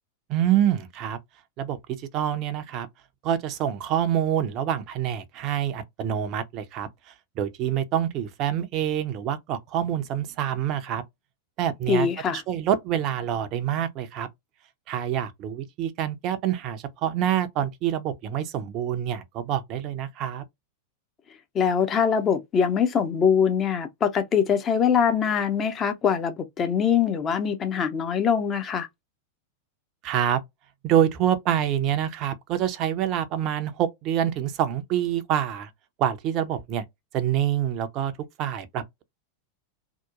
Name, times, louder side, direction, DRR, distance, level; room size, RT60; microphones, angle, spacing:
voice 1, 0.3-1.2 1.6-2.9 3.2-11.0 11.6-14.3 14.9-20.4 30.0-30.4 30.8-35.7 36.0-36.8 37.1-38.1 38.4-39.0, right 10 dB, 40° right, 0.4 m, -26 dB
voice 2, 11.9-12.4 21.5-28.9, left 7 dB, 25° left, 0.5 m, -23 dB
2.8 x 2.1 x 2.4 m
figure-of-eight pair, 90°, 0 cm